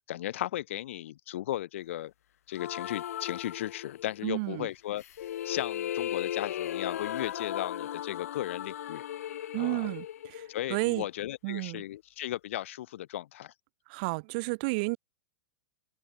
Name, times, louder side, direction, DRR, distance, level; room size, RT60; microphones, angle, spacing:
voice 1, 0.1-2.1 2.5-5.0 5.4-9.0 9.6-9.9 10.5-13.5, left 13 dB, 50° left, 0.6 m, -36 dB
sound 1, 2.5-4.3 5.0-11.1, left 11 dB, 70° left, 2.4 m, -37 dB
voice 2, 4.2-4.7 9.5-11.1 11.4-11.8 13.9-15.0, right 28 dB, 35° right, 1.9 m, -32 dB
supercardioid pair, 180°, 8 cm